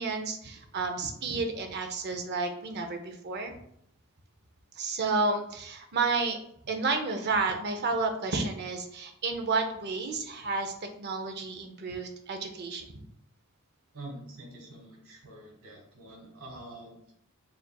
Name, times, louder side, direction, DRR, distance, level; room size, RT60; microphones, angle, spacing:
voice 1, 0.0-3.5 4.8-6.4 6.7-13.1, right 3 dB, 50° right, 5 dB, 0.6 m, -31 dB
voice 2, 13.9-17.1, right 1 dB, 65° right, -1 dB, 1.4 m, -46 dB
6.8 x 2.6 x 2.3 m, 0.72 s
head